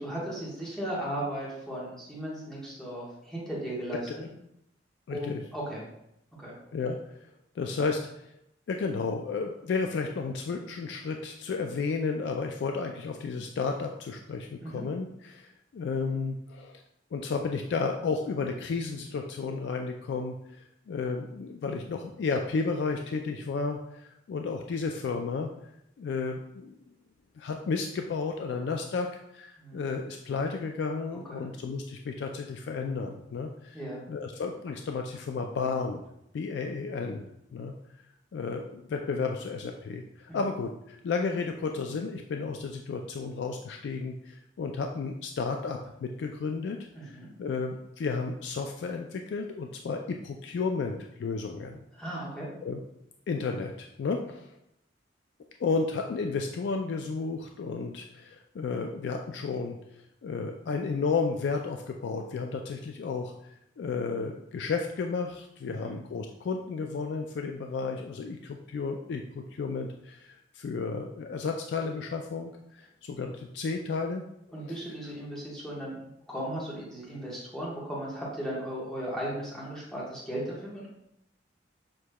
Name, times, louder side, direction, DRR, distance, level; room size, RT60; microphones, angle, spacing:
voice 1, 0.0-4.3 5.1-5.8 6.4-6.5 14.6-14.8 29.6-29.9 31.3-31.5 33.7-34.0 40.3-40.4 46.9-47.3 51.9-52.5 65.7-66.0 74.5-80.9, right 1 dB, 5° left, -6 dB, 1.2 m, -36 dB
voice 2, 5.1-5.4 6.7-7.2 7.6-8.0 8.7-15.5 15.7-16.8 17.1-25.5 26.0-26.8 27.4-29.1 29.3-33.8 34.1-36.0 36.3-37.3 37.5-37.7 38.3-51.8 52.6-52.8 53.3-54.5 55.6-74.2 74.7-74.8, left 4 dB, 70° left, 3 dB, 0.3 m, -32 dB
6.5 x 2.9 x 2.2 m, 0.80 s
head